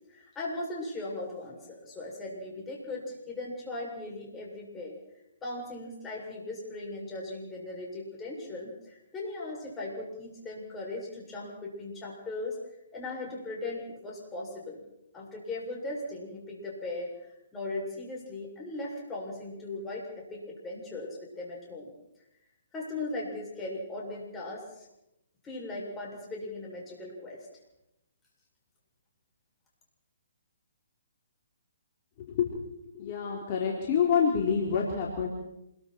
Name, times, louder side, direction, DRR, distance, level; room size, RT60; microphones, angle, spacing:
voice 1, 0.1-5.0 5.4-12.6 12.9-14.8 15.1-21.9 22.7-24.9 25.4-27.5, left 2 dB, 15° left, -3 dB, 7.8 m, -38 dB
voice 2, 32.2-32.5 32.9-35.3, left 7 dB, 40° left, -2 dB, 4.2 m, -27 dB
28.0 x 22.5 x 4.8 m, 0.85 s
hypercardioid pair, 140°, 0 cm